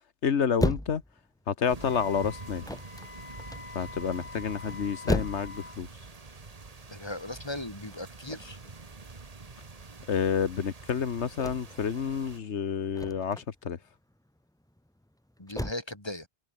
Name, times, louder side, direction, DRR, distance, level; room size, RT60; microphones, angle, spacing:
voice 1, 0.2-1.0 1.5-2.6 3.7-5.9 10.1-13.8, left 7 dB, 85° left, 1.5 m, -29 dB
sound 1, 0.6-15.7, left 1 dB, 5° left, 0.7 m, -37 dB
Wind instrument woodwind instrument, 1.7-5.8, left 4 dB, 50° left, 1.8 m, -46 dB
sound 2, 1.7-12.4, right 4 dB, 35° right, 1.4 m, -46 dB
voice 2, 6.9-8.6 15.4-16.3, left 1 dB, 25° left, 3.5 m, -38 dB
open air
omnidirectional pair, 1.1 m